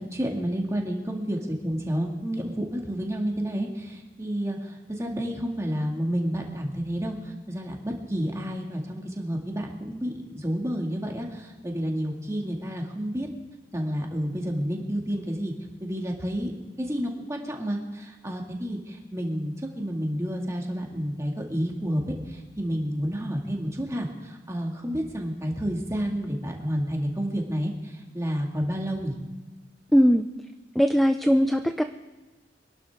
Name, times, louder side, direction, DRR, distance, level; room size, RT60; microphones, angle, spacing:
voice 1, 0.0-13.3 13.7-15.5 15.8-16.5 16.8-22.0 22.3-29.2, equal, 15° right, 0 dB, 2.1 m, -30 dB
voice 2, 29.9-30.3 30.8-31.8, equal, ahead, 7 dB, 0.4 m, -20 dB
25.0 x 11.5 x 3.6 m, 1.2 s
head